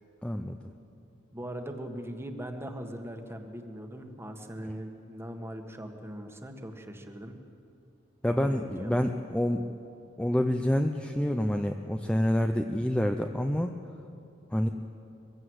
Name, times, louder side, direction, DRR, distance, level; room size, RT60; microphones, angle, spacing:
voice 1, 0.2-0.7 8.2-9.7 10.2-13.7 14.5-14.7, equal, 5° left, 5 dB, 0.6 m, -27 dB
voice 2, 1.3-7.4 8.2-9.0, equal, 10° right, 5 dB, 1.5 m, -40 dB
23.0 x 16.0 x 8.0 m, 2.7 s
head